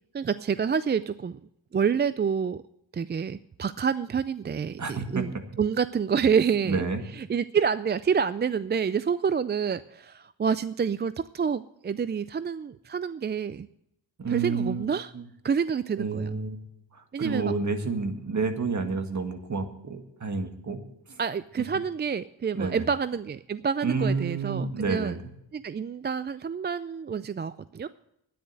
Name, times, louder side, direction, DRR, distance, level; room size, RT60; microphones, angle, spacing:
voice 1, 0.1-1.4 1.7-2.6 2.9-5.3 5.6-6.8 7.2-13.7 14.3-15.1 15.4-16.3 17.1-17.5 21.2-25.2 25.5-27.9, right 6 dB, 25° right, 15 dB, 0.4 m, -28 dB
voice 2, 4.8-5.2 6.7-7.0 14.2-14.9 15.1-15.2 16.0-16.6 16.9-20.8 21.1-21.2 22.5-22.9 23.8-25.2, right 4 dB, 40° right, 6 dB, 2.0 m, -29 dB
10.0 x 10.0 x 7.6 m, 0.78 s
cardioid pair, 65°, 43 cm